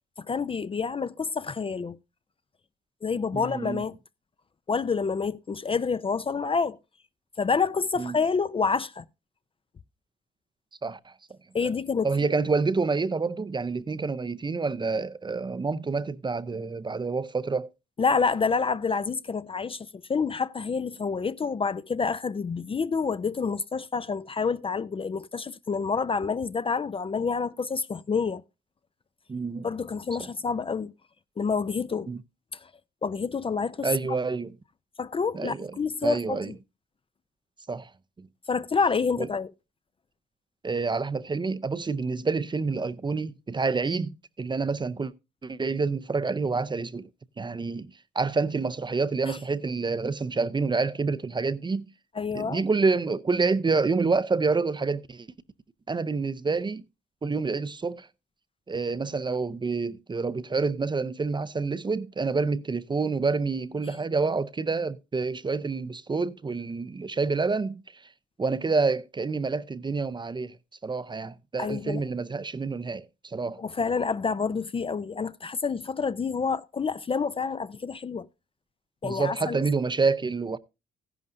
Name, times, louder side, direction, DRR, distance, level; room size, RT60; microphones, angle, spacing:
voice 1, 0.3-2.0 3.0-3.9 4.7-6.8 7.4-9.0 11.5-12.1 18.0-28.4 29.6-30.9 31.4-32.1 33.0-33.9 35.0-36.5 38.5-39.5 49.3-49.4 52.2-52.6 71.6-72.0 73.6-78.3 79.0-79.6, left 5 dB, 25° left, 0.5 m, -28 dB
voice 2, 3.3-3.8 8.0-8.2 10.8-11.7 12.0-17.7 29.3-29.7 30.2-30.3 32.1-32.2 33.8-34.6 35.3-35.7 36.0-36.5 37.7-37.9 38.2-38.3 39.2-39.3 40.6-45.1 45.4-47.1 47.4-51.9 52.3-55.3 55.9-56.8 57.2-58.1 58.7-68.0 68.4-70.5 70.8-73.6 79.0-80.6, right 4 dB, 25° right, 0.6 m, -28 dB
14.5 x 11.0 x 2.5 m
cardioid pair, 90°, 20 cm